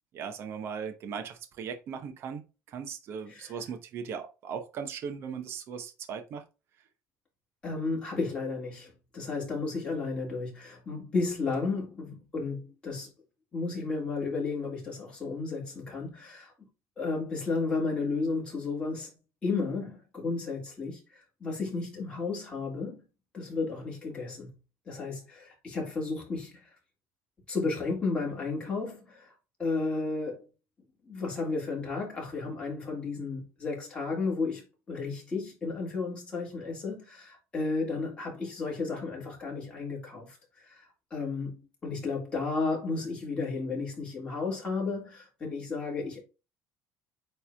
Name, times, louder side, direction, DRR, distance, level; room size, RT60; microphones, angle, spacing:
voice 1, 0.1-2.4 2.7-6.4, right 7 dB, 45° right, 1.0 m, -38 dB
voice 2, 7.6-13.1 13.5-16.5 17.0-19.1 19.4-23.0 23.3-24.5 24.8-26.7 27.5-29.3 29.6-30.4 31.0-34.6 34.9-41.5 41.8-46.2, left 3 dB, 15° left, 3.3 m, -33 dB
8.7 x 3.4 x 3.5 m
cardioid pair, 175°, 6 cm